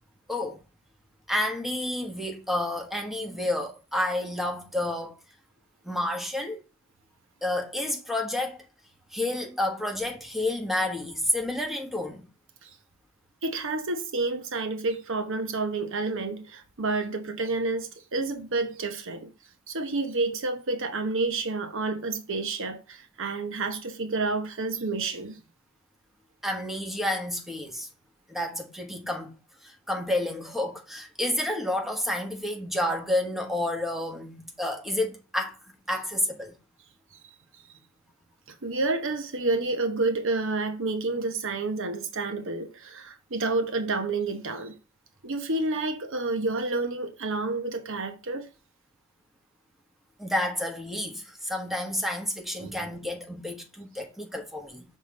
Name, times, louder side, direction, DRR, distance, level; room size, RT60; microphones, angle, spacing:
voice 1, 1.3-5.1 5.8-6.6 7.4-8.6 9.1-12.3 26.4-27.9 28.3-29.4 29.6-35.6 35.9-36.5 50.2-54.8, left 1 dB, ahead, 1.3 m, -30 dB
voice 2, 13.4-19.3 19.7-25.4 38.6-44.8 45.2-48.5 52.6-52.9, right 3 dB, 65° right, 0.9 m, -29 dB
6.6 x 3.7 x 5.2 m
head